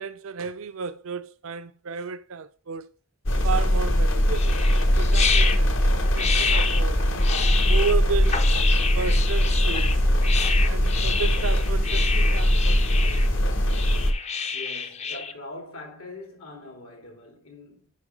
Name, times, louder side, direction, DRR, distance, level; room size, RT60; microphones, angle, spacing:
voice 1, 0.0-2.9 3.4-5.7 6.1-7.0 7.6-8.4 8.9-10.0 10.7-13.3, right 5 dB, 70° right, 0.5 m, -33 dB
sound 1, 3.3-14.1, equal, 60° left, 1.1 m, -21 dB
sound 2, 4.3-15.3, left 6 dB, 30° left, 0.6 m, -29 dB
voice 2, 14.5-17.9, left 2 dB, 75° left, 2.8 m, -42 dB
7.2 x 5.7 x 5.0 m
head